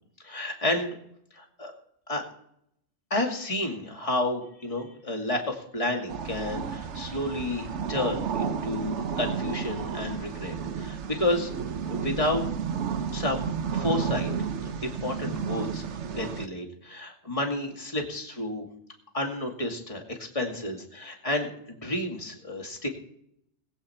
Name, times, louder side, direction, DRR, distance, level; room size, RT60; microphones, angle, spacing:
voice 1, 0.2-1.0 1.3-1.7 2.1-2.2 3.1-11.5 11.9-12.4 13.1-14.3 14.6-18.7 19.1-22.9, left 2 dB, 25° left, 2 dB, 2.4 m, -31 dB
sound 1, 6.1-16.5, right 6 dB, 65° right, 1.1 m, -32 dB
21.0 x 8.5 x 4.4 m, 0.72 s
omnidirectional pair, 1.3 m